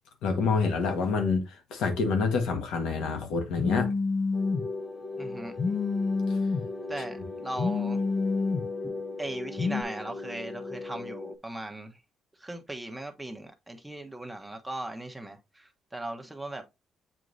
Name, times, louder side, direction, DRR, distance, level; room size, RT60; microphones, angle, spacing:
voice 1, 0.2-1.4 1.7-3.9 6.3-6.4, left 4 dB, 90° left, 1.4 m, -27 dB
Telephone, 3.6-4.6 5.6-6.6 7.6-8.6 9.6-9.8, left 4 dB, 55° left, 1.1 m, -27 dB
sound 1, 4.3-11.4, left 3 dB, 25° left, 1.0 m, -38 dB
voice 2, 5.2-5.5 6.9-8.0 8.8-8.9 9.2-11.9 12.4-16.6, right 1 dB, 5° right, 1.1 m, -38 dB
7.6 x 4.6 x 2.7 m
cardioid pair, 90°, 0 cm